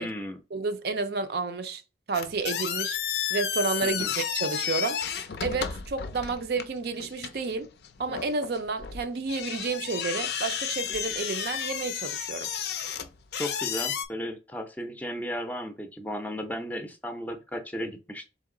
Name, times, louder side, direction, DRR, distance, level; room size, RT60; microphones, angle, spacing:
voice 1, 0.0-0.4 3.8-4.1 13.4-18.3, equal, 10° left, 0.5 m, -35 dB
voice 2, 0.5-1.8 2.1-3.0 3.3-5.0 5.4-7.7 8.0-12.5, right 4 dB, 60° right, 0.4 m, -30 dB
sound 1, 2.1-14.0, left 8 dB, 60° left, 0.4 m, -32 dB
3.9 x 2.9 x 3.7 m
head